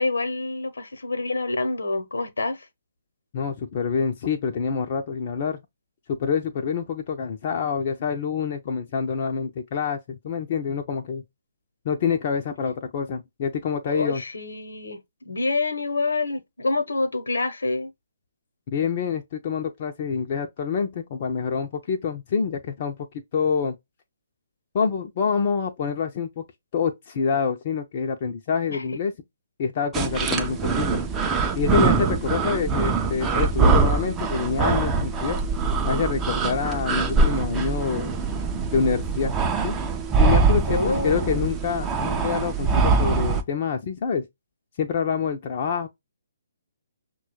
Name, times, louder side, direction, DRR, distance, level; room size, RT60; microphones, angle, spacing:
voice 1, 0.0-2.6 13.9-17.9 28.7-28.8 40.7-41.5, left 3 dB, 65° left, 0.9 m, -27 dB
voice 2, 3.3-5.6 6.1-11.2 11.8-14.2 18.7-23.0 23.3-23.7 24.7-26.4 26.7-29.1 29.6-31.0 31.6-35.4 35.8-38.1 38.7-39.3 39.6-39.8 40.2-44.2 44.8-45.9, left 6 dB, 35° left, 0.5 m, -26 dB
sound 1, 29.9-43.4, right 4 dB, 10° right, 0.5 m, -23 dB
6.0 x 2.3 x 2.9 m
figure-of-eight pair, 135°, 0 cm